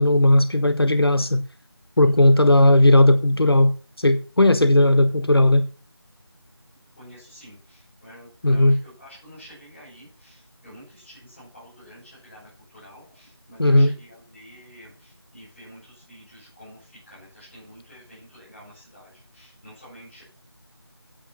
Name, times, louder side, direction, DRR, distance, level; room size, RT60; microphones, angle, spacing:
voice 1, 0.0-1.4 2.0-5.7 8.4-8.8 13.6-14.0, left 1 dB, 65° left, 1.1 m, -16 dB
voice 2, 2.0-2.5 6.9-20.2, equal, ahead, 4.9 m, -48 dB
8.9 x 8.7 x 5.9 m
figure-of-eight pair, 180°, 14 cm